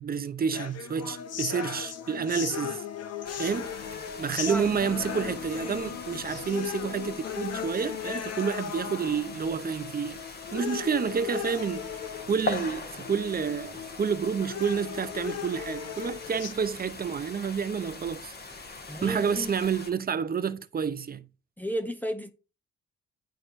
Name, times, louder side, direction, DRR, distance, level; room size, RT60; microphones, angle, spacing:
voice 1, 0.0-2.8 3.4-3.7 4.2-10.2 10.5-11.9 12.3-18.6 19.0-21.2, right 6 dB, 30° right, 0.7 m, -29 dB
sound 1, 0.5-16.5, left 9 dB, 55° left, 0.8 m, -37 dB
sound 2, 3.2-19.9, left 3 dB, 30° left, 1.2 m, -41 dB
sound 3, 3.6-7.6, left 3 dB, 85° left, 1.6 m, -55 dB
voice 2, 4.3-4.7 18.9-19.6 21.6-22.3, equal, 5° left, 0.9 m, -33 dB
10.5 x 4.3 x 2.6 m
cardioid pair, 90°, 30 cm